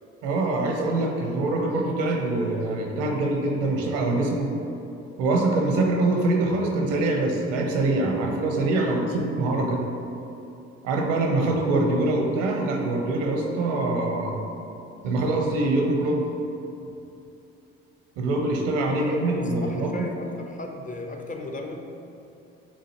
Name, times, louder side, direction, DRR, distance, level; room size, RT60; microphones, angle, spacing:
voice 1, 0.2-4.5 5.2-9.9 10.8-14.4 15.0-16.3 18.2-20.1, right 2 dB, 75° right, 1 dB, 0.8 m, -24 dB
voice 2, 8.8-9.3 19.0-21.8, left 2 dB, 25° left, 3 dB, 0.5 m, -37 dB
7.1 x 2.5 x 2.9 m, 2.8 s
hypercardioid pair, 55°, 31 cm